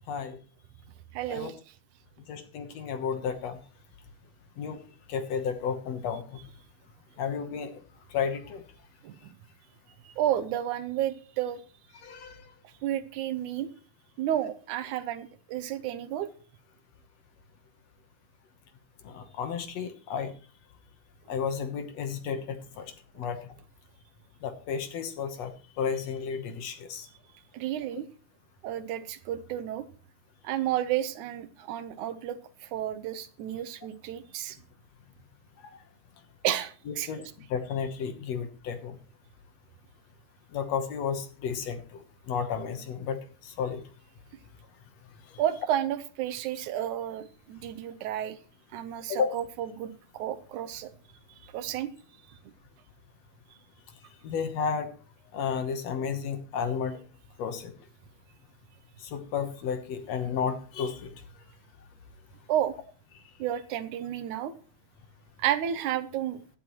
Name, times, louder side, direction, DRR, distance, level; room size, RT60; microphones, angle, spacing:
voice 1, 0.1-0.4 1.3-1.5 2.3-3.6 4.6-4.8 5.1-6.4 7.2-7.7 8.1-8.6 12.0-12.4 19.1-20.3 21.3-23.4 24.4-25.5 25.8-27.1 36.9-37.2 37.5-39.0 40.5-41.8 42.3-43.2 43.5-43.8 49.1-49.3 54.2-54.9 55.3-57.0 57.4-57.7 59.0-61.1, left 6 dB, 65° left, 8 dB, 2.2 m, -32 dB
voice 2, 1.1-1.6 9.0-9.3 10.1-11.6 12.8-13.7 14.2-16.3 27.5-28.1 28.6-29.9 30.4-34.6 36.4-37.1 45.4-48.4 48.7-50.9 51.5-51.9 62.5-62.7 63.4-64.5 65.4-66.4, right 11 dB, 85° right, 12 dB, 2.3 m, -31 dB
16.5 x 11.0 x 3.1 m, 0.38 s
omnidirectional pair, 3.5 m